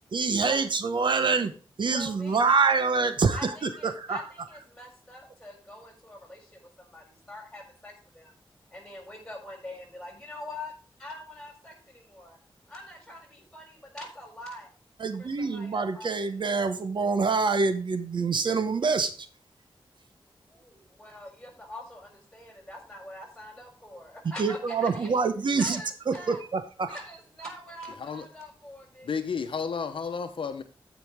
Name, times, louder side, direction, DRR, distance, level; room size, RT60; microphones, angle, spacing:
voice 1, 0.1-1.5 1.8-3.5 3.8-4.2 15.0-19.1 24.4-25.8 26.1-26.6, right 4 dB, 60° right, 0.9 m, -25 dB
voice 2, 1.9-2.8 3.3-8.3 8.7-10.7 11.0-12.4 12.7-14.7 15.2-16.3 20.5-25.3 25.6-26.4 26.8-29.1, left 1 dB, 10° left, 4.2 m, -44 dB
voice 3, 29.0-30.6, left 6 dB, 75° left, 0.9 m, -32 dB
15.5 x 5.2 x 3.5 m
wide cardioid pair, 135°, 9 cm